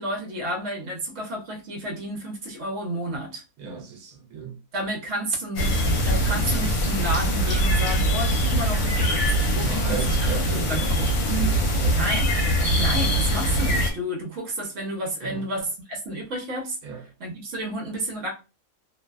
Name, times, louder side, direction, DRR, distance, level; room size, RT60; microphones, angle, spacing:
voice 1, 0.0-3.4 4.7-10.0 10.5-11.2 12.0-12.4 12.7-16.8 17.2-18.3, right 1 dB, 65° right, 1.1 m, -31 dB
voice 2, 3.6-4.6 9.5-11.0 11.2-12.1 15.2-15.5 16.8-17.0, right 7 dB, 85° right, 1.1 m, -34 dB
sound 1, 5.6-13.9, equal, 65° left, 0.9 m, -22 dB
2.6 x 2.2 x 2.2 m
omnidirectional pair, 1.5 m